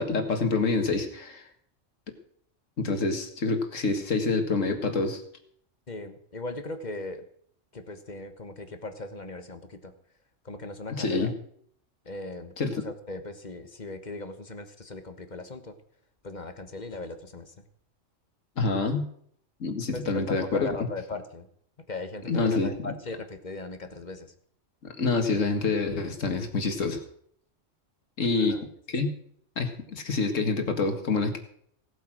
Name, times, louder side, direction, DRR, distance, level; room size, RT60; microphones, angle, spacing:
voice 1, 0.0-1.4 2.8-5.2 11.0-11.3 12.6-12.8 18.6-19.0 19.6-20.7 22.3-22.9 24.8-27.0 28.2-28.6 28.9-29.1 29.6-31.4, left 3 dB, 90° left, 5 dB, 2.2 m, -27 dB
voice 2, 5.9-7.2 7.7-9.9 10.4-11.3 12.0-15.7 16.2-17.6 19.9-21.5 21.9-24.3 28.4-28.6, left 2 dB, 35° left, 8 dB, 1.3 m, -38 dB
17.5 x 8.1 x 6.2 m, 0.64 s
omnidirectional pair, 1.3 m